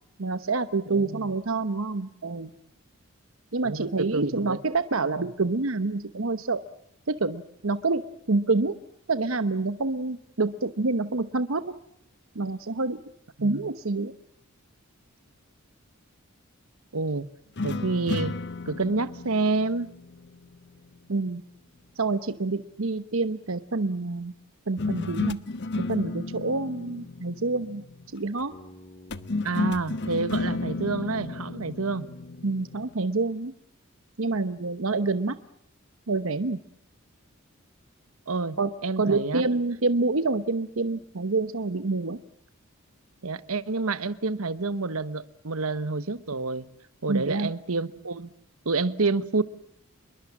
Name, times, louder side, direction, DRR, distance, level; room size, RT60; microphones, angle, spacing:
voice 1, 0.2-2.5 3.5-6.6 7.1-8.0 8.3-8.8 9.1-11.6 12.3-13.0 13.4-14.1 21.1-21.4 22.0-24.3 24.7-25.4 25.9-27.8 28.1-28.5 32.4-33.5 34.2-35.4 36.1-36.6 38.6-38.7 39.0-42.2 47.1-47.5, right 3 dB, 65° right, 1.0 m, -27 dB
voice 2, 0.9-1.3 3.6-4.6 5.1-5.2 13.4-13.6 16.9-17.3 17.6-18.4 18.7-19.9 29.4-32.1 38.3-39.4 43.2-46.7 47.0-48.3 48.6-49.4, right 3 dB, 80° right, 1.2 m, -28 dB
sound 1, 17.6-21.0 24.8-28.2 29.1-32.9, left 3 dB, 55° left, 1.0 m, -33 dB
Bass guitar, 28.5-32.6, left 1 dB, 30° left, 2.2 m, -53 dB
27.5 x 22.0 x 7.3 m
head